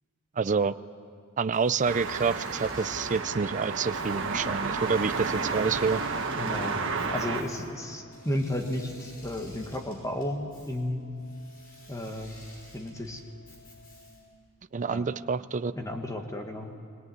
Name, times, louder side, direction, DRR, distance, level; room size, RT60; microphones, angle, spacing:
voice 1, 0.4-0.7 1.4-6.0 14.7-15.7, right 5 dB, 35° right, 14 dB, 0.5 m, -28 dB
Engine / Mechanisms, 1.5-14.4, left 1 dB, 45° left, 6.0 m, -52 dB
sound 1, 1.8-7.4, right 4 dB, 60° right, 1.7 m, -31 dB
Organ, 3.8-14.9, equal, 75° left, 6.3 m, -56 dB
voice 2, 6.4-11.1 11.9-12.4 12.7-13.2 14.9-15.1 15.7-16.7, left 1 dB, 15° left, 3 dB, 1.7 m, -33 dB
21.0 x 17.5 x 9.4 m, 2.2 s
head